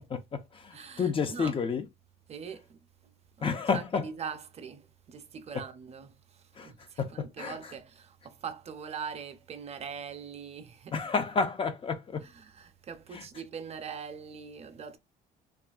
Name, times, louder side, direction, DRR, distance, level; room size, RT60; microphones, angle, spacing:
voice 1, 0.0-1.8 3.4-4.0 6.6-6.7 7.0-7.6 10.9-12.3 13.1-13.2, left 5 dB, 30° left, 0.5 m, -30 dB
voice 2, 0.7-1.6 2.3-2.8 3.4-3.5 3.7-11.1 12.2-15.0, right 6 dB, 40° right, 0.5 m, -42 dB
2.7 x 2.4 x 2.3 m
cardioid pair, 110°, 17 cm